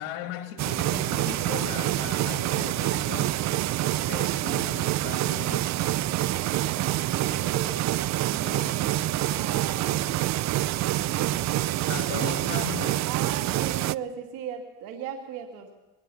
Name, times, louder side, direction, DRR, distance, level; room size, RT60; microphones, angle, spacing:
voice 1, 0.0-3.4 4.1-5.8 6.7-7.1 8.2-8.7 11.9-13.1, left 11 dB, 80° left, 2.7 m, -38 dB
sound 1, 0.6-14.0, right 14 dB, 55° right, 0.6 m, -26 dB
voice 2, 6.3-10.3 11.0-11.6 11.9-12.6 13.1-15.7, right 8 dB, 80° right, 2.4 m, -38 dB
22.5 x 19.5 x 7.1 m
supercardioid pair, 95°, 33 cm